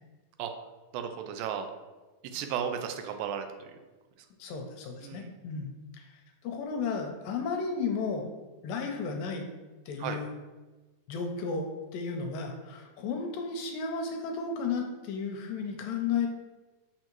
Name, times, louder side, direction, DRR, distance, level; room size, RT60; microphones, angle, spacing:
voice 1, 0.9-1.7 2.3-3.7 5.0-5.3 10.0-10.2, right 8 dB, 80° right, 6 dB, 2.2 m, -34 dB
voice 2, 4.4-6.1 6.4-8.3 8.6-9.5 9.9-10.3 11.1-16.3, left 5 dB, 80° left, 3 dB, 2.2 m, -33 dB
6.7 x 5.8 x 3.0 m, 1.2 s
omnidirectional pair, 4.1 m